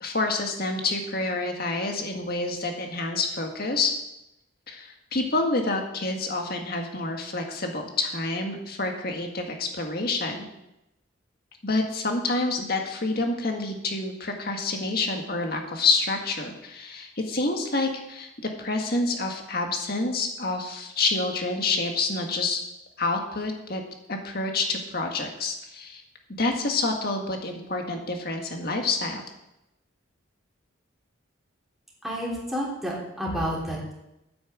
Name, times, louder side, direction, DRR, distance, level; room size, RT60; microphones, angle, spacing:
voice 1, 0.0-3.9 4.7-10.5 11.6-18.3 18.6-22.6 23.0-23.8 24.1-26.0 26.4-29.2, left 3 dB, 50° left, 3 dB, 1.8 m, -28 dB
voice 2, 32.0-33.9, equal, ahead, -5 dB, 3.3 m, -30 dB
9.7 x 8.7 x 7.5 m, 0.90 s
head